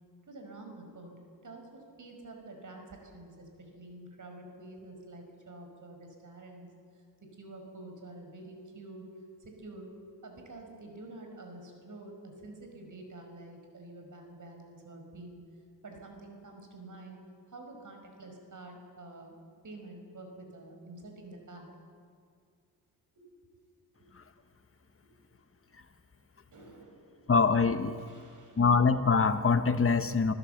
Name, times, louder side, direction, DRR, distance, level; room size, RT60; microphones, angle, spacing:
voice 1, 0.3-9.9 10.2-15.4 15.8-19.3 19.6-21.7 23.2-23.3 24.0-24.1 26.5-27.3 28.0-28.6, right 2 dB, 50° right, 3 dB, 5.4 m, -48 dB
voice 2, 27.3-28.0 28.6-30.3, left 5 dB, 35° left, 9 dB, 1.4 m, -24 dB
26.0 x 15.5 x 8.1 m, 2.2 s
cardioid pair, 95°, 39 cm